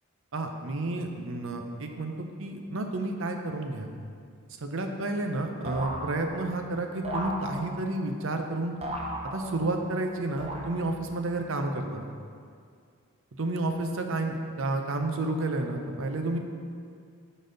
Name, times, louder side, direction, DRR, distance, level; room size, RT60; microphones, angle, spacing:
voice 1, 0.3-3.9 4.6-8.7 9.2-12.1 13.4-16.4, right 2 dB, 65° right, 4 dB, 0.7 m, -31 dB
sound 1, 5.7-6.6 7.0-8.0 8.8-9.8 10.4-11.1, right 1 dB, 30° right, 0.8 m, -36 dB
10.5 x 4.1 x 3.9 m, 2.3 s
head